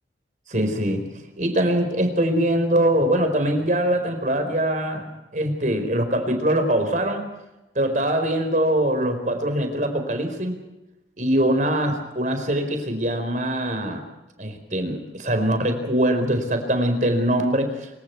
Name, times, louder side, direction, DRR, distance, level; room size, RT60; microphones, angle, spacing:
voice 1, 0.5-1.1 1.4-7.2 7.7-10.6 11.2-14.0 14.4-17.9, right 1 dB, 45° right, 7 dB, 4.6 m, -23 dB
27.0 x 25.0 x 4.7 m, 0.98 s
head